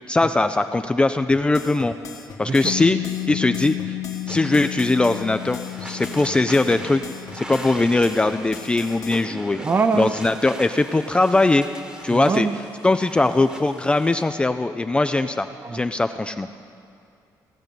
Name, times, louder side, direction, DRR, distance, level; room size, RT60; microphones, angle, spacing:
voice 1, 0.1-2.0 2.4-3.0 3.3-3.9 4.3-7.0 7.3-9.6 9.9-11.7 12.0-12.5 12.8-16.5, left 2 dB, 15° left, 9 dB, 0.4 m, -20 dB
sound 1, 1.3-9.2, left 4 dB, 50° left, 1.6 m, -39 dB
Piano, 2.6-9.9, left 17 dB, 85° left, 0.4 m, -33 dB
sound 2, 4.3-14.2, right 1 dB, 10° right, 1.2 m, -40 dB
voice 2, 9.6-10.1 12.1-12.6 15.6-15.8, right 4 dB, 30° right, 10 dB, 0.7 m, -23 dB
16.5 x 6.6 x 9.0 m, 2.5 s
cardioid pair, 120°, 7 cm